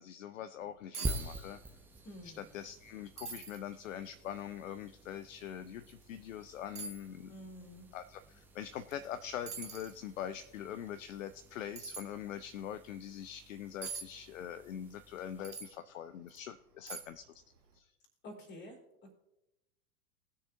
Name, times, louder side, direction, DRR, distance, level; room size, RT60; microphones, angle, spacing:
voice 1, 0.0-1.6 2.2-7.3 7.9-17.3 17.8-17.9, left 10 dB, 60° left, 12 dB, 0.6 m, -43 dB
sound 1, 0.6-0.7 0.9-1.2 1.5-2.1 2.4-2.5 3.2-3.6 4.2-4.3 5.8-6.0 6.8-7.0 8.9-9.1 9.5-10.0 11.8-12.1 13.8-14.1 15.4-15.7 16.3-16.4 16.9-17.3 17.6-17.7, right 5 dB, 80° right, 1.4 m, -43 dB
sound 2, 1.0-15.8, right 1 dB, 5° right, 0.5 m, -48 dB
voice 2, 2.0-2.5 7.3-7.9 18.2-19.1, equal, 25° left, 0 dB, 3.1 m, -49 dB
19.0 x 6.6 x 2.7 m, 0.90 s
figure-of-eight pair, 90°, 45 cm